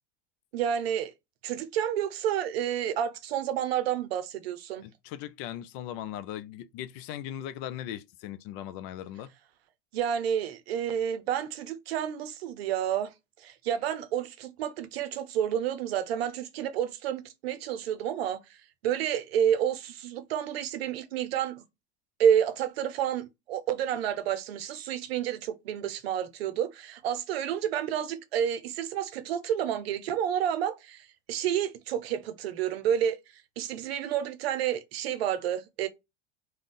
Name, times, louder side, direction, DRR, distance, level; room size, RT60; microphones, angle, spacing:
voice 1, 0.5-1.1 1.4-4.9 9.9-13.1 13.4-18.4 18.8-21.6 22.2-33.2 33.6-35.9, right 9 dB, 85° right, 0.6 m, -29 dB
voice 2, 4.8-9.3, left 11 dB, 60° left, 0.5 m, -39 dB
2.4 x 2.2 x 3.5 m
supercardioid pair, 100°, 30 cm